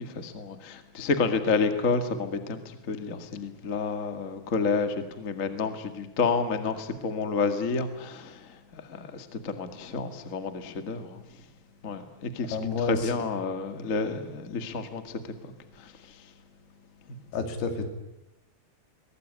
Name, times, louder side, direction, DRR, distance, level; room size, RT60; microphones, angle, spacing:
voice 1, 0.0-2.6 2.9-8.4 8.7-11.2 11.8-12.6 12.9-15.2, left 4 dB, 40° left, 7 dB, 1.2 m, -29 dB
voice 2, 12.5-13.1 17.3-17.9, left 4 dB, 75° left, 6 dB, 4.5 m, -29 dB
23.0 x 20.5 x 9.7 m, 0.92 s
omnidirectional pair, 4.7 m